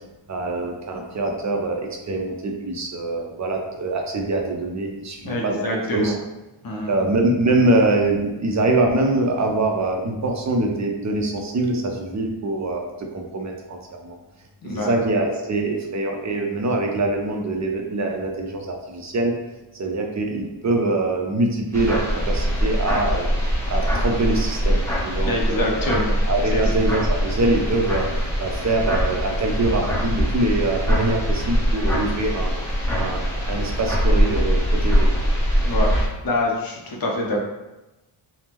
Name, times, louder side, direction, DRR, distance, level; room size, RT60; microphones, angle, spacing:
voice 1, 0.3-6.1 6.9-12.9 13.1-13.8 14.0-14.2 14.6-19.3 19.8-23.3 23.7-25.9 26.3-28.1 28.4-32.5 33.0-35.1, right 2 dB, 35° right, 2 dB, 0.4 m, -24 dB
voice 2, 5.2-6.1 6.6-6.9 14.6-14.9 25.2-26.2 26.5-26.6 35.6-35.9 36.2-37.4, left 1 dB, 45° left, -1 dB, 0.7 m, -25 dB
sound 1, 21.7-36.1, equal, 5° left, 0.7 m, -22 dB
3.4 x 2.0 x 2.9 m, 1.0 s
wide cardioid pair, 120°, 50 cm